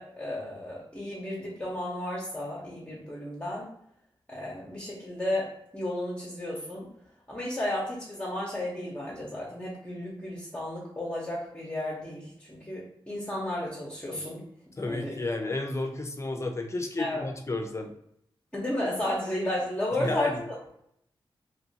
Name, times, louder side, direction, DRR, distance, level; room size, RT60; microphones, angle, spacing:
voice 1, 0.0-3.7 4.3-6.9 7.3-14.4 14.9-15.1 17.0-17.2 18.5-20.4, left 1 dB, 15° left, -6 dB, 0.9 m, -33 dB
voice 2, 14.8-17.9 20.0-20.4, left 2 dB, 30° left, 5 dB, 0.5 m, -32 dB
3.0 x 2.7 x 2.7 m, 0.73 s
wide cardioid pair, 80°, 9 cm